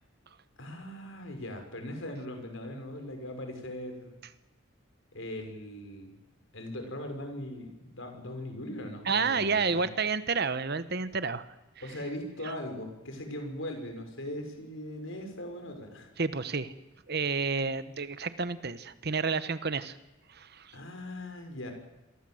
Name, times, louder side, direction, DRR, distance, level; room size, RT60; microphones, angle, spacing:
voice 1, 0.6-4.2 5.1-6.1 6.5-9.9 11.8-16.1 20.7-21.7, left 1 dB, 60° left, 5 dB, 6.0 m, -40 dB
voice 2, 9.0-11.5 16.2-16.7 17.1-20.0 20.3-20.7, right 4 dB, 45° right, 13 dB, 1.1 m, -30 dB
28.5 x 22.5 x 7.9 m, 1.0 s
head